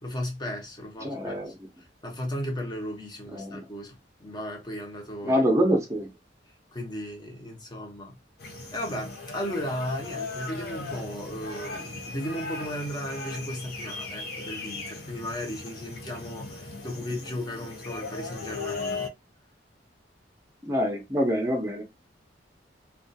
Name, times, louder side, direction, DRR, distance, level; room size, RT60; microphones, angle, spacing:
voice 1, 0.0-5.4 6.7-8.2 8.7-19.0, equal, 25° left, 0.8 m, -35 dB
voice 2, 1.0-1.5 3.3-3.6 5.2-6.1 20.6-21.8, equal, 15° right, 0.6 m, -25 dB
sound 1, 8.4-19.1, left 3 dB, 60° left, 0.6 m, -37 dB
2.3 x 2.3 x 2.6 m
head